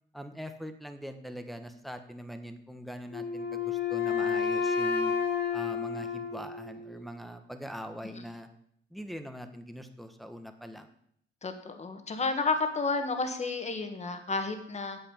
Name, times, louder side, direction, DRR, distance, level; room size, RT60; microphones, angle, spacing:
voice 1, 0.1-5.1 5.5-8.5 8.9-10.9, equal, ahead, 7 dB, 1.4 m, -42 dB
Wind instrument woodwind instrument, 3.1-7.1, left 6 dB, 60° left, 2.3 m, -30 dB
voice 2, 11.4-15.0, left 3 dB, 35° left, 6 dB, 1.9 m, -31 dB
9.1 x 7.8 x 7.3 m, 0.69 s
cardioid pair, 90°, 20 cm